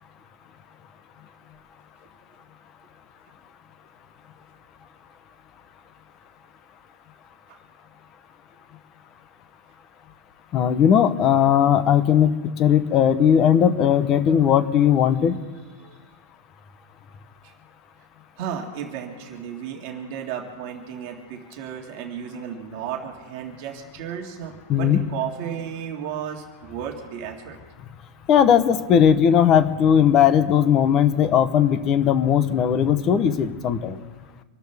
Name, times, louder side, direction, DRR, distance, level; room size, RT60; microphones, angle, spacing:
voice 1, 10.5-12.3 12.6-15.4 24.7-25.0 28.3-34.0, left 9 dB, 20° left, 12 dB, 0.7 m, -18 dB
voice 2, 18.4-27.6, right 8 dB, 35° right, 1 dB, 2.0 m, -34 dB
26.0 x 13.0 x 3.4 m, 1.3 s
supercardioid pair, 175°, 0 cm